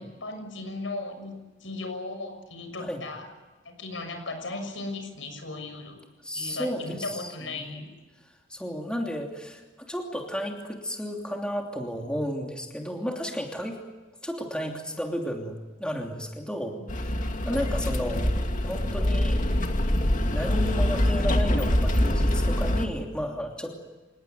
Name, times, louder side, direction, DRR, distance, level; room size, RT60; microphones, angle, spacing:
voice 1, 0.0-3.3 3.6-6.0 6.3-7.9 16.6-16.9 17.4-17.7, left 2 dB, 80° left, 6 dB, 6.5 m, -37 dB
voice 2, 6.2-7.3 7.6-7.8 8.5-13.8 14.2-17.1 17.5-18.3 18.6-19.4 20.3-23.7, equal, 5° left, 1 dB, 2.9 m, -33 dB
sound 1, 16.9-22.9, left 1 dB, 45° left, 2.3 m, -24 dB
26.5 x 19.5 x 9.5 m, 1.2 s
head